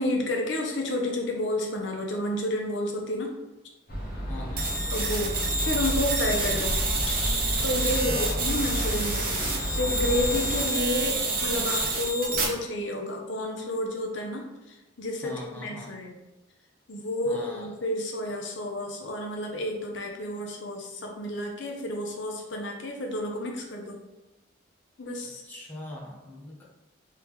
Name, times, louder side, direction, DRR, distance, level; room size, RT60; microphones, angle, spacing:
voice 1, 0.0-3.3 4.9-6.8 7.1-16.2 16.9-24.0 25.0-25.4, left 1 dB, 75° left, 1 dB, 0.7 m, -31 dB
sound 1, 3.9-10.6, equal, 50° left, 0.9 m, -31 dB
voice 2, 4.3-4.7 7.9-8.5 15.2-16.0 17.2-17.7 25.4-26.6, left 1 dB, 10° left, -5 dB, 0.7 m, -41 dB
sound 2, 4.6-12.4, right 2 dB, 45° right, 0.7 m, -28 dB
3.4 x 3.4 x 3.1 m, 1.0 s
head